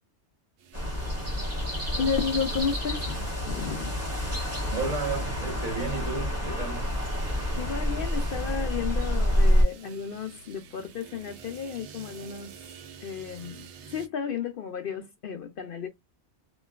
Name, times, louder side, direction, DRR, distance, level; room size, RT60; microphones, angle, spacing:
sound 1, 0.6-14.1, right 7 dB, 85° right, 0.9 m, -49 dB
sound 2, 0.7-9.6, equal, 15° right, 1.1 m, -28 dB
voice 1, 2.0-3.2 3.5-3.9 7.5-12.6 13.0-15.9, left 6 dB, 60° left, 0.6 m, -33 dB
voice 2, 4.7-6.9, right 4 dB, 40° right, 1.0 m, -33 dB
3.0 x 2.2 x 2.3 m
omnidirectional pair, 1.2 m